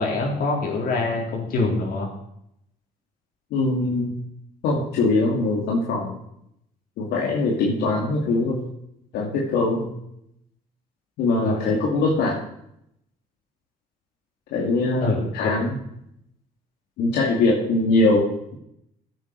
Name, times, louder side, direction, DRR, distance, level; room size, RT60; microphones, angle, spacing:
voice 1, 0.0-2.1 11.4-11.6 15.0-15.5, left 3 dB, 60° left, -1 dB, 4.3 m, -24 dB
voice 2, 3.5-4.1 4.6-6.2 7.0-8.7 9.1-9.9 11.2-12.4 14.5-15.8 17.0-18.5, left 2 dB, 80° left, -3 dB, 2.5 m, -22 dB
16.0 x 9.1 x 4.7 m, 0.77 s
cardioid pair, 110°, 17 cm